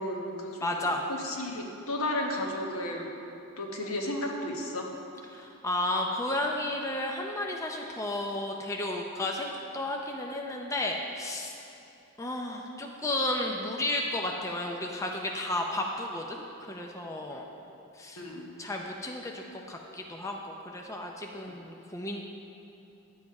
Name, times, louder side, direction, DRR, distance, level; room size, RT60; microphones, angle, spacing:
voice 1, 0.0-3.1 3.6-4.9 17.4-17.5 18.2-18.5, left 1 dB, 75° left, 1 dB, 1.2 m, -34 dB
voice 2, 0.6-1.0 5.3-11.5 12.2-16.4 16.7-17.4 18.0-18.2 18.6-22.2, left 1 dB, 15° left, 1 dB, 0.5 m, -33 dB
10.5 x 7.4 x 4.7 m, 2.8 s
head